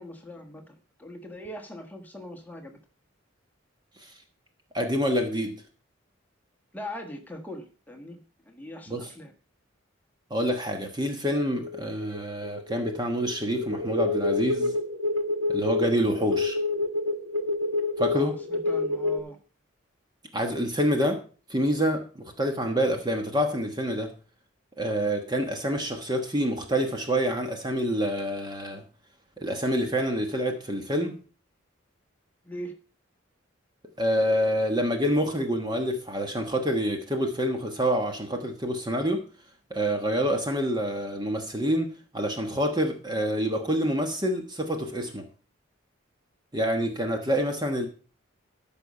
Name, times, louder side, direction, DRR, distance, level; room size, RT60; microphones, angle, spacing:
voice 1, 0.0-2.8 6.7-9.3 18.1-19.4 32.4-32.7, left 1 dB, 10° left, 3 dB, 1.4 m, -41 dB
voice 2, 4.7-5.5 8.9-9.1 10.3-14.8 15.5-16.6 18.0-18.3 20.3-21.2 21.5-24.1 24.8-28.8 29.4-31.2 34.0-39.2 39.7-45.3 46.5-47.9, equal, 20° right, 4 dB, 1.2 m, -27 dB
sound 1, 11.6-19.2, left 2 dB, 85° right, 1.2 m, -28 dB
13.5 x 5.5 x 5.3 m, 0.38 s
head